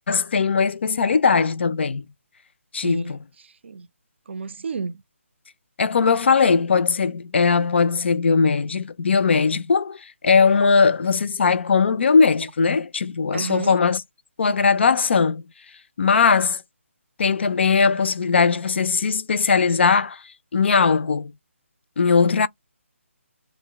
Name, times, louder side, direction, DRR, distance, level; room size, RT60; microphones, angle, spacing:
voice 1, 0.1-2.0 2.7-3.2 5.8-14.0 14.4-15.4 16.0-16.6 17.2-20.2 20.5-21.3 22.0-22.5, left 5 dB, 55° left, 0.4 m, -19 dB
voice 2, 2.8-3.1 3.6-3.9 4.3-5.0 13.3-13.7, right 4 dB, 55° right, 0.4 m, -30 dB
2.7 x 2.1 x 3.4 m
figure-of-eight pair, 155°, 7 cm